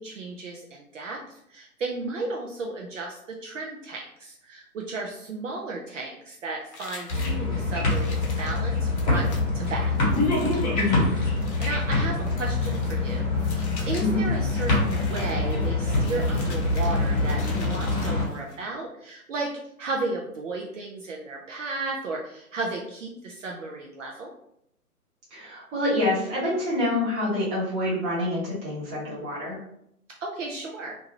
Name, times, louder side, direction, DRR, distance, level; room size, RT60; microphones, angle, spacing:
voice 1, 0.0-9.3 9.5-9.9 11.6-13.3 13.9-19.5 19.8-24.3 30.2-31.0, right 3 dB, 55° right, -1 dB, 0.6 m, -34 dB
sound 1, 6.7-18.6, left 3 dB, 45° left, 0.8 m, -45 dB
sound 2, 7.1-18.2, left 2 dB, 30° left, 1.1 m, -25 dB
voice 2, 10.7-11.1 14.0-14.2 25.3-29.6, left 2 dB, 15° right, -8 dB, 1.0 m, -26 dB
2.6 x 2.2 x 3.0 m, 0.74 s
figure-of-eight pair, 135°, 46 cm